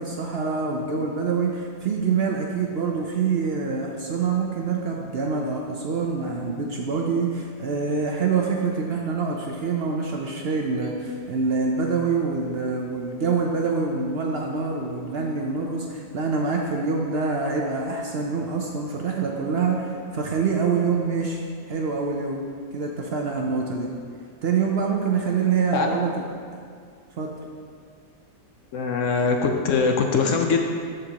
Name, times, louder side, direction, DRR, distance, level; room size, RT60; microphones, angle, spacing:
voice 1, 0.0-22.4 22.7-23.9 24.4-26.1 27.2-27.3, right 5 dB, 75° right, 0 dB, 0.5 m, -25 dB
voice 2, 28.7-30.6, left 5 dB, 70° left, 3 dB, 0.7 m, -22 dB
12.5 x 5.1 x 2.9 m, 2.2 s
omnidirectional pair, 1.8 m